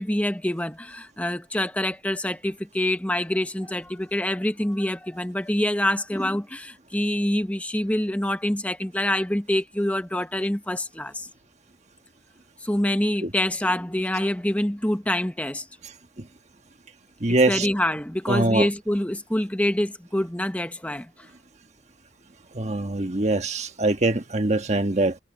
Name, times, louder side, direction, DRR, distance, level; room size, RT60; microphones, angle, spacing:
voice 1, 0.0-11.3 12.6-15.7 17.3-21.1, left 1 dB, 5° left, 1.0 m, -26 dB
voice 2, 17.2-17.7 18.3-18.7 22.5-25.2, right 2 dB, 35° right, 1.4 m, -23 dB
head